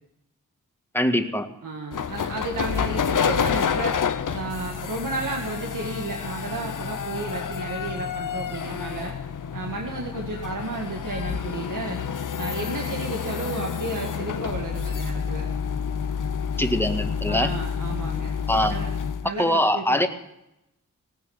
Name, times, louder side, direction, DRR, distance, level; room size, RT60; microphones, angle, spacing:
voice 1, 0.9-1.5 16.6-17.5 18.5-18.7 19.4-20.1, left 1 dB, 5° left, 6 dB, 1.8 m, -22 dB
voice 2, 1.6-4.0 4.3-9.2 9.5-12.0 12.4-15.5 17.3-18.3 18.7-18.9 19.2-20.1, right 3 dB, 75° right, 1 dB, 1.9 m, -33 dB
sound 1, 1.9-19.3, left 7 dB, 75° left, 0.8 m, -29 dB
18.0 x 9.6 x 7.0 m, 0.88 s
wide cardioid pair, 65°, 32 cm